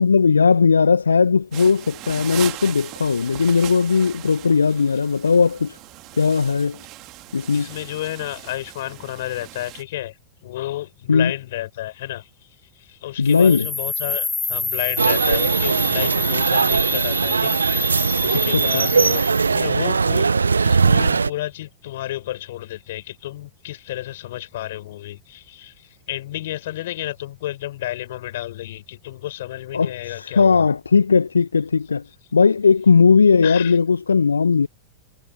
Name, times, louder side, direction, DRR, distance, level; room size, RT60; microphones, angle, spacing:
voice 1, 0.0-5.8 6.1-6.8 7.3-7.7 11.1-11.3 13.2-13.7 18.3-18.9 29.7-32.1 32.3-34.7, left 5 dB, 75° left, 1.5 m, -17 dB
sound 1, 1.5-9.8, right 19 dB, 40° right, 3.2 m, -38 dB
voice 2, 7.5-10.1 10.4-12.3 12.8-30.7 33.4-33.8, left 14 dB, 55° left, 7.0 m, -31 dB
sound 2, 13.3-19.6, left 3 dB, 10° left, 2.7 m, -28 dB
sound 3, 15.0-21.3, right 5 dB, 75° right, 0.9 m, -19 dB
figure-of-eight pair, 90°, 0 cm